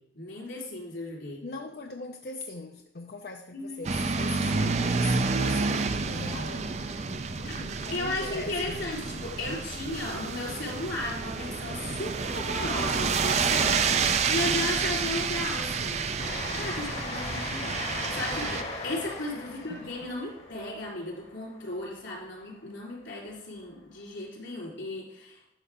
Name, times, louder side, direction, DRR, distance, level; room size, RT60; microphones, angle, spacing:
voice 1, 0.1-1.5 3.5-4.8 7.4-7.6 7.9-16.3 16.5-25.4, left 2 dB, 90° left, -2 dB, 3.8 m, -35 dB
voice 2, 1.4-8.8 19.5-20.2, left 3 dB, 55° left, 4 dB, 0.5 m, -41 dB
sound 1, 3.8-18.6, right 5 dB, 35° right, 0.4 m, -29 dB
Train, 16.2-22.3, left 3 dB, 40° left, 2.3 m, -38 dB
11.0 x 6.5 x 3.6 m, 0.78 s
head